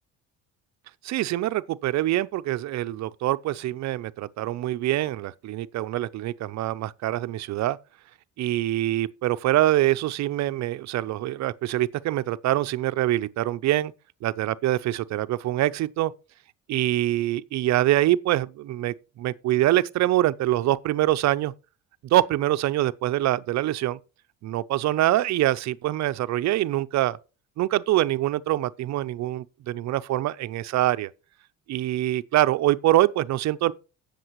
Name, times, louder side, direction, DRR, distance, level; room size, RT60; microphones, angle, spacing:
voice 1, 1.0-7.8 8.4-13.9 14.2-16.1 16.7-21.5 22.0-24.0 24.4-27.2 27.6-31.1 31.7-33.7, right 15 dB, 60° right, 0.5 m, -24 dB
17.0 x 6.7 x 3.0 m
cardioid pair, 100°, 32 cm